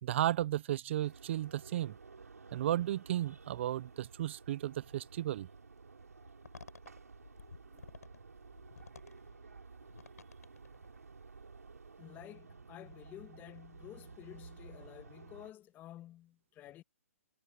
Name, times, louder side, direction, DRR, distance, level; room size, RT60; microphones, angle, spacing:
voice 1, 0.0-1.9 2.5-5.5, right 12 dB, 50° right, 0.6 m, -34 dB
sound 1, 1.0-15.5, right 4 dB, 90° right, 7.1 m, -54 dB
sound 2, 6.1-11.1, left 5 dB, 85° left, 5.5 m, -55 dB
voice 2, 8.7-9.1 12.0-16.8, left 13 dB, 20° left, 1.5 m, -52 dB
hypercardioid pair, 135°, 8 cm